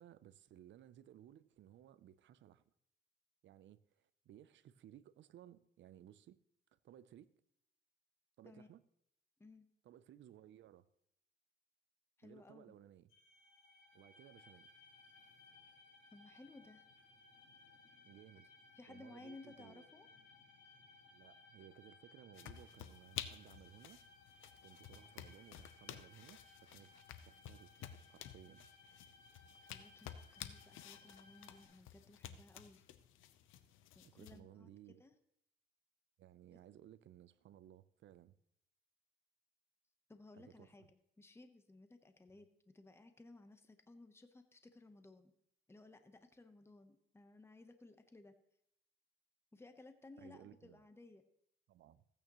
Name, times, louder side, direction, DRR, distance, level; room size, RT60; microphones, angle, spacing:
voice 1, 0.0-2.6 3.4-6.4 6.7-7.3 8.4-8.8 9.8-10.9 12.2-13.1 13.9-14.7 18.1-18.5 18.9-19.9 21.1-24.0 24.3-26.9 27.3-28.7 34.0-35.0 36.2-38.3 40.4-40.7 50.2-50.8 51.7-52.0, right 11 dB, 70° right, 0.6 m, -60 dB
voice 2, 12.2-12.8 16.1-16.8 18.7-20.1 29.4-32.9 33.9-34.7 35.0-35.1 36.5-36.6 40.1-42.5 42.7-45.3 45.7-48.3 49.5-51.2, left 2 dB, 10° left, 1.0 m, -59 dB
sound 1, 13.1-31.7, left 3 dB, 45° left, 3.8 m, -63 dB
sound 2, 22.3-34.4, left 10 dB, 85° left, 0.7 m, -53 dB
15.5 x 8.8 x 3.1 m
cardioid pair, 90°, 20 cm